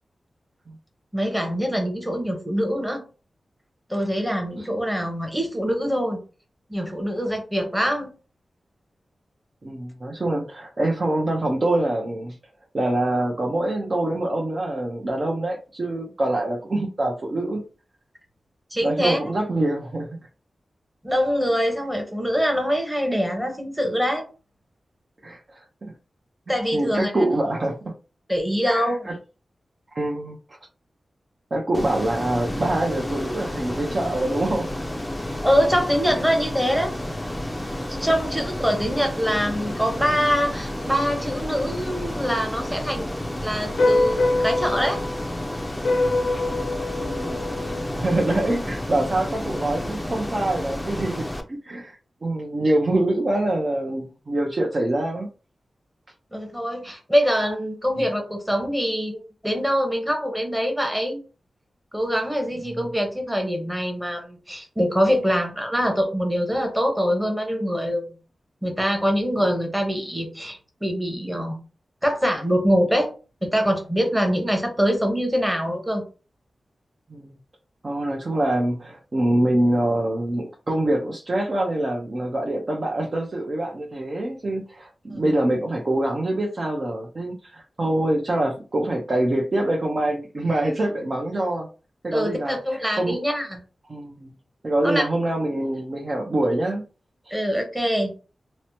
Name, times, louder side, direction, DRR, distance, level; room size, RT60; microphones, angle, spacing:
voice 1, 1.1-3.0 3.9-6.2 6.7-8.1 18.7-19.2 21.0-24.2 26.5-27.1 28.3-29.1 35.4-36.9 38.0-43.1 43.4-45.0 56.3-61.2 61.9-68.2 68.6-71.6 72.0-73.1 73.4-76.0 85.1-85.3 92.1-93.6 94.8-95.1 97.3-98.1, equal, 5° right, 3 dB, 0.9 m, -24 dB
voice 2, 9.6-12.3 12.7-17.6 18.8-20.2 25.2-25.9 26.7-27.9 28.7-29.1 29.9-30.4 31.5-34.7 47.0-55.3 58.0-58.1 62.6-62.8 77.1-77.3 77.8-91.7 92.0-93.2 93.9-94.3 94.6-96.8 97.2-97.4, right 1 dB, 45° right, -1 dB, 0.6 m, -25 dB
Ocean, 31.7-51.4, left 1 dB, 10° left, 0.5 m, -31 dB
sound 1, 43.7-48.7, left 2 dB, 70° left, 0.4 m, -25 dB
3.0 x 2.1 x 2.7 m, 0.34 s
wide cardioid pair, 90°, 0 cm